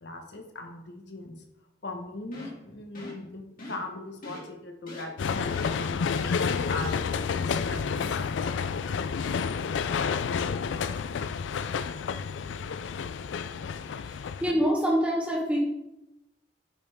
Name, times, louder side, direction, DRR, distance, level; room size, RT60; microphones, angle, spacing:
voice 1, 0.0-1.3 1.8-7.0 7.4-8.7, left 2 dB, 70° left, 4 dB, 1.2 m, -39 dB
sound 1, 2.3-2.6 3.0-3.2 3.6-3.9 4.2-4.4 4.9-5.0 5.5-5.7 6.1-6.3 6.8-6.9, left 2 dB, 50° left, 2.5 m, -42 dB
sound 2, 5.2-14.5, left 6 dB, 85° left, 0.4 m, -30 dB
voice 2, 13.9-15.6, equal, 5° right, -4 dB, 1.1 m, -26 dB
8.8 x 5.5 x 3.6 m, 0.90 s
head